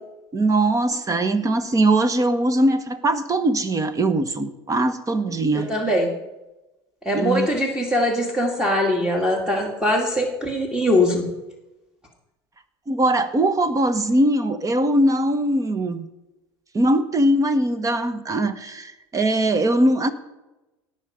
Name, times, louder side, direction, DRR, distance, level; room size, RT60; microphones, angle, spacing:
voice 1, 0.3-5.7 7.1-7.5 12.9-16.0 16.7-20.1, right 1 dB, 25° right, 11 dB, 1.3 m, -21 dB
voice 2, 5.7-6.1 7.0-11.2, left 1 dB, 5° right, 0 dB, 2.4 m, -21 dB
18.0 x 5.9 x 5.2 m, 1.0 s
hypercardioid pair, 85°, 14 cm